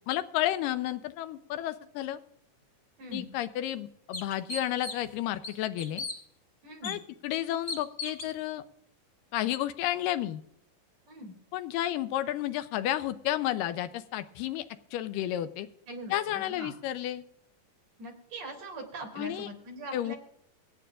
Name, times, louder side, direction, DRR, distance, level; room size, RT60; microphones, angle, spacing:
voice 1, 0.1-2.2 3.1-6.1 6.8-8.6 9.3-10.4 11.5-14.7 14.9-15.7 16.1-17.2 19.2-19.5 19.9-20.1, left 13 dB, 85° left, 11 dB, 2.3 m, -31 dB
sound 1, 3.1-3.2 3.7-3.8 4.1-5.1 5.4-6.2 6.8-6.9 7.7-8.3, left 3 dB, 70° left, 0.6 m, -37 dB
voice 2, 6.6-7.0 11.1-11.3 15.9-16.7 18.0-20.2, right 2 dB, 50° right, 1 dB, 4.3 m, -42 dB
24.0 x 9.3 x 2.5 m, 0.68 s
omnidirectional pair, 3.9 m